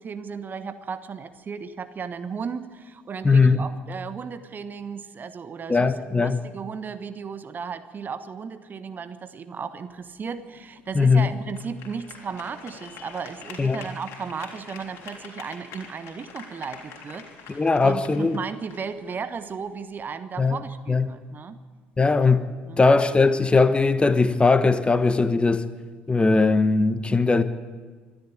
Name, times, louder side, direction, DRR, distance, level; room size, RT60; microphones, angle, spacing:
voice 1, 0.0-21.6 22.6-22.8, right 6 dB, 35° right, 1.2 m, -35 dB
voice 2, 3.2-3.6 5.7-6.4 10.9-11.3 13.6-13.8 17.5-18.4 20.4-20.6 20.9-21.1 22.0-22.5 22.8-25.7 26.1-27.4, left 4 dB, 20° left, 1.1 m, -19 dB
sound 1, 9.9-20.0, left 6 dB, 50° left, 3.7 m, -46 dB
24.5 x 13.0 x 8.6 m
figure-of-eight pair, 55°, 6 cm